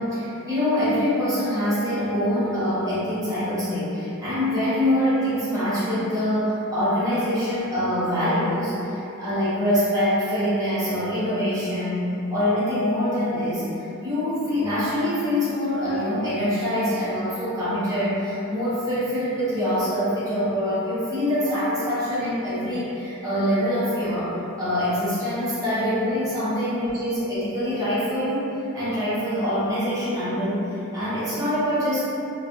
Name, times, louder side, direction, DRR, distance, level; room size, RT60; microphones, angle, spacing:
voice 1, 0.0-32.0, equal, 15° right, -13 dB, 0.8 m, -24 dB
2.3 x 2.3 x 2.6 m, 2.8 s
head